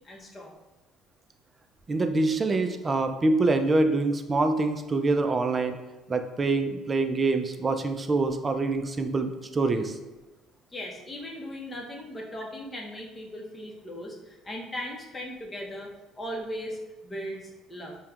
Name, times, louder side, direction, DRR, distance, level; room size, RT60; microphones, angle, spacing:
voice 1, 0.0-0.5 10.7-18.0, equal, 25° left, -1 dB, 0.8 m, -38 dB
voice 2, 1.9-5.8 6.1-10.0, right 3 dB, 25° right, 7 dB, 0.4 m, -25 dB
5.3 x 2.2 x 2.4 m, 1.1 s
supercardioid pair, 85°, 0 cm